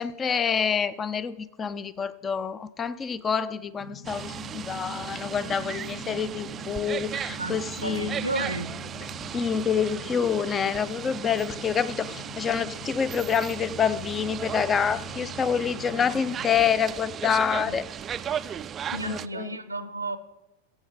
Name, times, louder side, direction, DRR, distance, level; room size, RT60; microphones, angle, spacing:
voice 1, 0.0-8.2 9.3-17.9 19.0-19.6, left 7 dB, 20° left, 0.6 m, -27 dB
sound 1, 3.7-16.8, left 5 dB, 60° left, 3.2 m, -45 dB
sound 2, 4.0-19.3, right 9 dB, 25° right, 0.4 m, -36 dB
voice 2, 7.4-8.7 17.7-17.8 18.9-20.2, right 2 dB, 85° right, 0.7 m, -32 dB
21.0 x 8.5 x 3.9 m
figure-of-eight pair, 90°, 0 cm